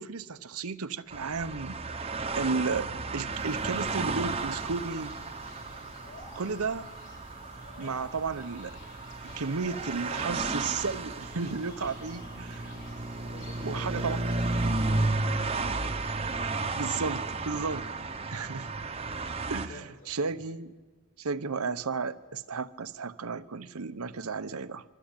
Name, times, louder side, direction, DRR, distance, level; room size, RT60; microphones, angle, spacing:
voice 1, 0.0-1.8 2.4-5.2 6.3-6.9 7.8-8.8 9.4-12.7 13.6-14.2 16.7-17.9 18.2-18.7 19.5-20.8 21.2-24.8, right 4 dB, 90° right, 0.9 m, -33 dB
sound 1, 1.1-19.7, right 3 dB, 25° right, 1.0 m, -33 dB
sound 2, 3.3-15.1, left 2 dB, 55° left, 4.9 m, -50 dB
voice 2, 13.2-16.5 19.6-20.5, left 1 dB, 75° left, 6.7 m, -50 dB
25.0 x 23.5 x 9.0 m
head